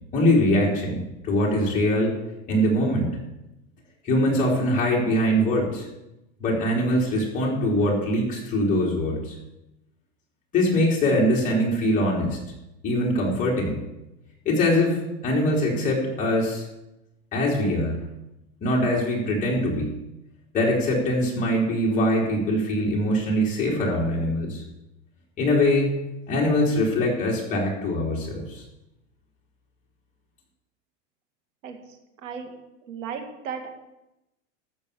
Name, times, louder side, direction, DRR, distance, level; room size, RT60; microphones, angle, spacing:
voice 1, 0.1-2.1 2.5-3.1 4.0-5.9 6.4-9.4 10.5-12.4 12.8-13.8 14.5-16.7 17.3-18.0 18.6-19.9 20.5-24.6 25.4-25.9 26.3-28.6, left 1 dB, 20° left, -4 dB, 3.5 m, -23 dB
voice 2, 31.6-32.5 32.9-33.7, right 6 dB, 85° right, 5 dB, 2.1 m, -36 dB
13.5 x 7.0 x 6.9 m, 0.93 s
supercardioid pair, 160°, 37 cm